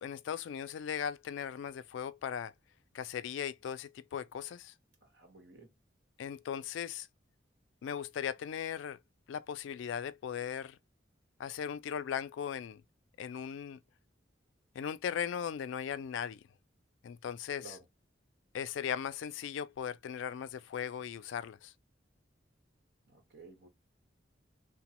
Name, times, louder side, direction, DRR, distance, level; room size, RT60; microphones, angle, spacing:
voice 1, 0.0-2.5 2.9-4.7 6.2-7.1 7.8-9.0 9.3-10.8 11.4-12.8 13.2-13.8 14.7-16.4 17.0-17.8 18.5-21.7, left 8 dB, 80° left, 0.3 m, -38 dB
voice 2, 5.0-5.7 17.6-17.8 23.1-23.7, right 3 dB, 55° right, 1.1 m, -54 dB
2.9 x 2.1 x 2.8 m
head